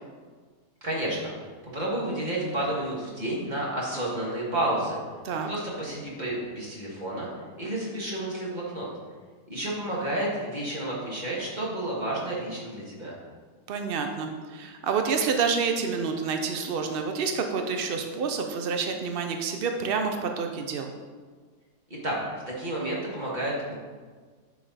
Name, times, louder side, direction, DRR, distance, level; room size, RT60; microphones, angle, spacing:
voice 1, 0.8-1.3 1.6-5.0 5.4-7.3 7.6-8.9 9.5-13.1 22.0-22.2 22.5-23.7, right 1 dB, 30° right, -5 dB, 1.9 m, -30 dB
voice 2, 13.7-20.9, right 5 dB, 80° right, 5 dB, 0.5 m, -28 dB
9.0 x 5.1 x 4.1 m, 1.5 s
omnidirectional pair, 1.7 m